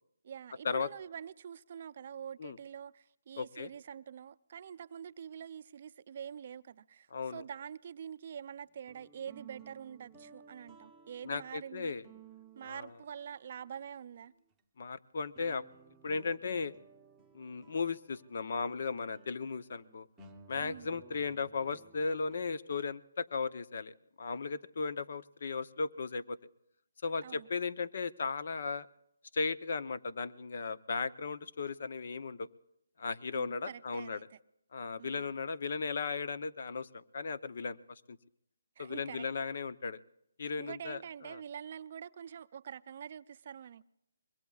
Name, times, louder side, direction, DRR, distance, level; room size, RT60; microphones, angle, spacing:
voice 1, 0.2-12.0 12.5-14.3 20.6-20.9 27.2-27.5 33.3-34.4 35.0-35.3 38.8-39.3 40.6-43.8, right 8 dB, 40° right, 0.5 m, -46 dB
voice 2, 3.4-3.7 7.1-7.4 11.2-12.0 12.6-12.9 14.8-15.6 16.0-16.7 17.3-20.1 20.5-26.4 27.0-28.9 29.3-32.5 33.0-34.2 34.7-38.0 38.8-40.0 40.4-41.0 41.3-41.4, left 4 dB, 55° left, 0.7 m, -36 dB
sound 1, 8.6-13.8 14.5-14.6 15.3-22.4, right 4 dB, 5° right, 1.0 m, -58 dB
25.0 x 21.5 x 2.4 m
hypercardioid pair, 165°, 0 cm